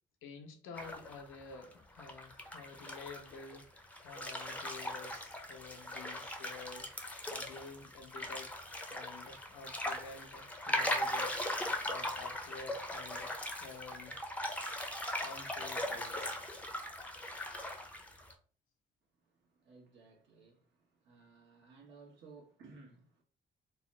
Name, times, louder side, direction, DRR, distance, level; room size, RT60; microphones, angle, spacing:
voice 1, 0.2-8.5 8.9-11.5 11.9-14.1 15.2-16.3, left 4 dB, 85° left, 0.7 m, -50 dB
sound 1, 0.7-1.7 2.0-18.3, left 1 dB, 5° left, 0.5 m, -39 dB
voice 2, 19.5-23.2, right 4 dB, 65° right, 1.1 m, -58 dB
2.9 x 2.0 x 3.1 m
cardioid pair, 90°, 20 cm